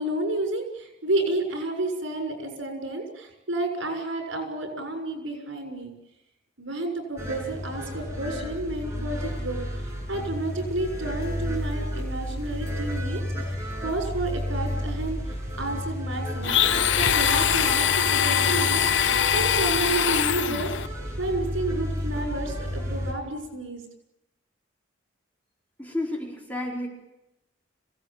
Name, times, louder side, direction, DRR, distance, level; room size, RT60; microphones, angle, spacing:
voice 1, 0.0-5.9 6.6-13.6 13.8-16.5 17.0-20.7 21.2-23.8, right 2 dB, 80° right, 4 dB, 6.6 m, -31 dB
sound 1, 7.2-23.1, equal, 15° right, 6.8 m, -32 dB
Domestic sounds home sounds, 16.4-20.9, left 8 dB, 65° left, 0.8 m, -22 dB
voice 2, 25.8-26.9, left 1 dB, 10° left, 0 dB, 4.4 m, -31 dB
26.0 x 17.5 x 9.1 m, 0.89 s
head